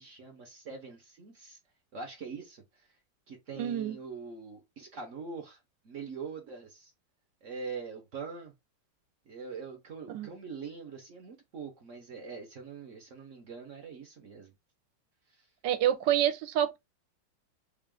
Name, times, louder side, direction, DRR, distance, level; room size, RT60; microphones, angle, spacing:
voice 1, 0.0-1.6 1.9-2.6 3.3-5.6 5.8-6.9 7.4-8.5 9.3-14.5, right 5 dB, 55° right, 0.9 m, -43 dB
voice 2, 3.6-4.0 10.1-10.3 15.6-16.8, right 11 dB, 80° right, 1.2 m, -27 dB
3.7 x 2.4 x 3.5 m
omnidirectional pair, 2.0 m